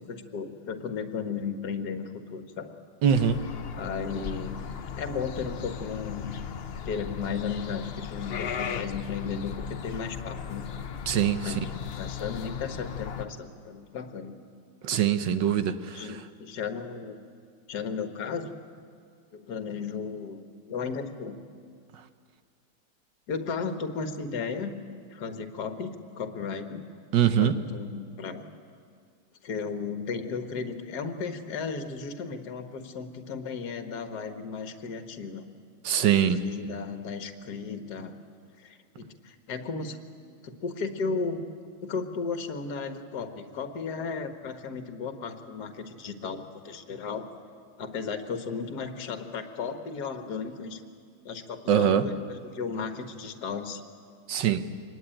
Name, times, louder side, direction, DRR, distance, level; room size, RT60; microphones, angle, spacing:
voice 1, 0.0-2.8 3.7-4.6 5.0-6.4 6.9-10.7 11.4-11.6 11.9-14.4 15.9-17.3 17.7-18.5 19.3-20.4 20.7-21.4 23.3-24.8 25.1-26.9 27.4-28.5 29.4-35.4 36.0-38.2 38.6-40.0 40.4-41.4 41.8-47.3 47.8-50.8 51.2-53.8, left 5 dB, 55° left, 7 dB, 1.8 m, -35 dB
voice 2, 3.0-3.4 11.1-11.5 14.8-16.0 27.1-27.6 35.8-36.4 51.7-52.0 54.3-54.6, right 9 dB, 65° right, 10 dB, 1.5 m, -23 dB
sound 1, 3.2-13.2, left 7 dB, 70° left, 0.5 m, -37 dB
24.5 x 20.0 x 9.0 m, 2.2 s
omnidirectional pair, 2.2 m